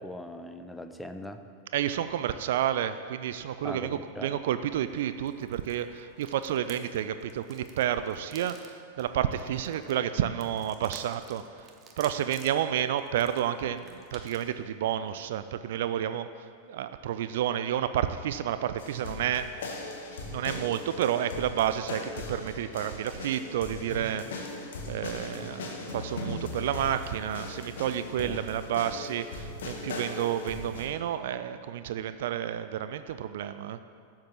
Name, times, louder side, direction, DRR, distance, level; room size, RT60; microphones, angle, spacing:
voice 1, 0.0-1.4 3.6-4.4 28.2-28.4, left 1 dB, 5° left, 8 dB, 0.7 m, -40 dB
voice 2, 1.7-11.6 12.0-19.5 20.3-24.6 24.8-33.8, right 10 dB, 55° right, 12 dB, 0.5 m, -30 dB
sound 1, 4.7-14.5, right 5 dB, 30° right, 1.3 m, -52 dB
sound 2, 18.8-30.9, left 2 dB, 60° left, 1.7 m, -39 dB
12.5 x 7.4 x 7.5 m, 2.2 s
figure-of-eight pair, 90°, 0 cm